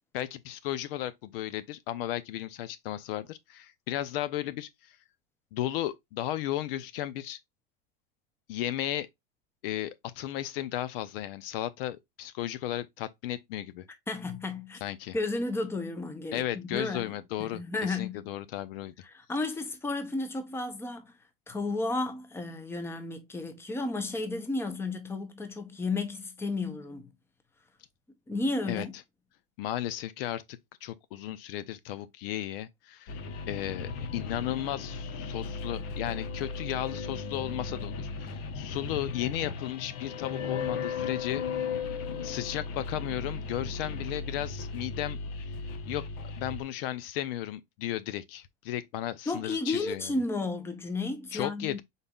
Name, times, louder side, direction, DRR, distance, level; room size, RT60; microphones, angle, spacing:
voice 1, 0.1-5.0 5.5-7.4 8.5-9.1 9.6-13.8 14.8-15.2 16.3-18.9 28.7-28.9 29.6-30.4 30.8-33.2 33.5-41.4 42.2-45.2 45.9-46.1 46.4-50.2 51.3-51.8, left 13 dB, 70° left, 0.6 m, -35 dB
voice 2, 14.1-14.8 15.1-17.1 17.4-18.3 19.0-21.1 21.5-27.1 28.3-28.9 49.3-51.8, left 3 dB, 10° left, 0.7 m, -33 dB
sound 1, 33.1-46.6, left 5 dB, 55° left, 1.0 m, -36 dB
5.3 x 4.0 x 2.3 m
supercardioid pair, 130°, 30 cm